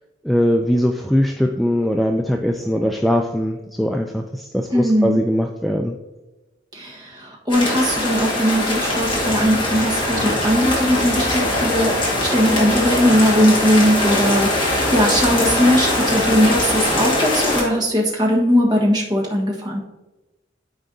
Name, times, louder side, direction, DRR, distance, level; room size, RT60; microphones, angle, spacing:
voice 1, 0.2-5.9, equal, ahead, 2 dB, 0.3 m, -20 dB
voice 2, 4.7-5.2 6.7-19.8, equal, 20° right, -2 dB, 1.3 m, -19 dB
sound 1, 7.5-17.6, left 1 dB, 25° left, 1.7 m, -21 dB
sound 2, 8.9-17.2, right 1 dB, 50° right, 2.1 m, -34 dB
12.5 x 4.7 x 2.7 m, 1.1 s
head